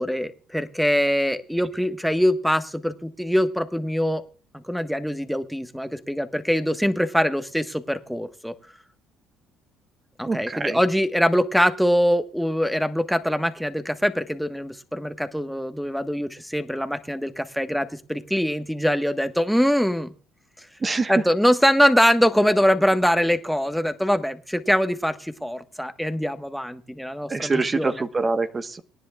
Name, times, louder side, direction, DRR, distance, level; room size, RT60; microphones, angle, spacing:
voice 1, 0.0-4.2 4.5-8.5 10.2-20.1 21.1-27.9, equal, ahead, 8 dB, 1.4 m, -23 dB
voice 2, 10.3-10.8 20.8-21.2 27.3-28.8, right 3 dB, 30° right, 9 dB, 1.3 m, -25 dB
26.0 x 10.5 x 2.4 m, 0.37 s
hypercardioid pair, 60°, 0 cm